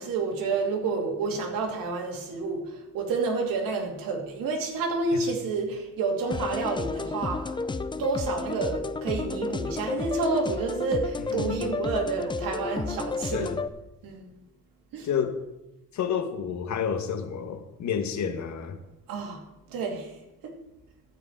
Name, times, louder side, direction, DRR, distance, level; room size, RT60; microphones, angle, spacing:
voice 1, 0.0-7.6 8.0-13.5 14.0-14.3 14.9-15.1 19.1-19.4 19.7-20.1 20.4-20.5, right 4 dB, 80° right, 2 dB, 2.7 m, -29 dB
sound 1, 6.3-13.7, left 4 dB, 15° left, 0.5 m, -32 dB
voice 2, 11.3-11.7 13.3-13.6 15.0-15.4 15.9-18.8, left 7 dB, 55° left, 8 dB, 1.4 m, -30 dB
13.5 x 5.0 x 8.7 m, 0.95 s
cardioid pair, 125°, 34 cm